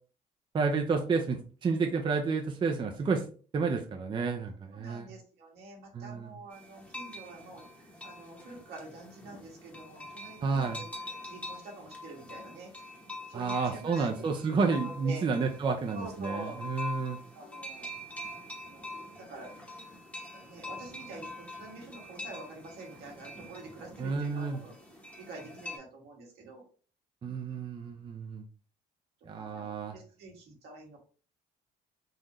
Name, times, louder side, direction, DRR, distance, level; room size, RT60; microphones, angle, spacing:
voice 1, 0.5-3.2 3.5-5.1 5.9-6.3 10.4-10.8 13.3-17.2 24.0-24.6 27.2-28.4 29.3-30.0, right 4 dB, 30° right, 4 dB, 0.5 m, -30 dB
voice 2, 4.7-10.9 11.2-12.7 13.3-14.1 14.5-15.3 15.9-16.6 17.3-17.9 18.6-19.5 20.3-24.7 25.2-26.6 29.4-31.0, right 2 dB, 80° right, -1 dB, 1.6 m, -47 dB
sound 1, 6.5-25.8, left 1 dB, 10° left, 0.9 m, -44 dB
3.9 x 2.6 x 3.0 m, 0.40 s
cardioid pair, 110°, 17 cm